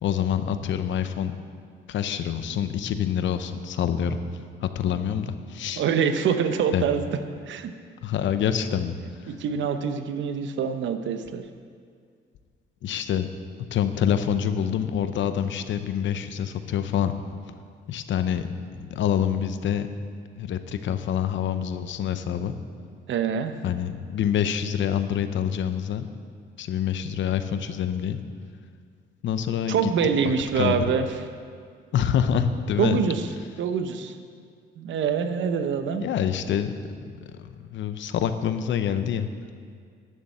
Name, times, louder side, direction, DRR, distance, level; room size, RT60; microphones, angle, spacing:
voice 1, 0.0-1.3 1.9-4.2 4.6-5.8 6.7-6.9 8.0-9.4 12.8-13.3 13.7-17.1 17.9-18.5 18.7-19.9 20.4-22.5 23.6-26.1 26.6-28.2 29.2-29.9 30.2-30.8 31.9-33.0 35.9-36.7 37.4-39.3, left 9 dB, 70° left, 10 dB, 0.8 m, -26 dB
voice 2, 5.8-7.1 7.5-7.7 9.3-11.4 23.1-23.5 29.7-31.1 32.8-33.2 33.6-34.1 34.8-36.0, right 7 dB, 70° right, 8 dB, 0.9 m, -25 dB
11.0 x 7.2 x 7.9 m, 2.1 s
cardioid pair, 90°, 20 cm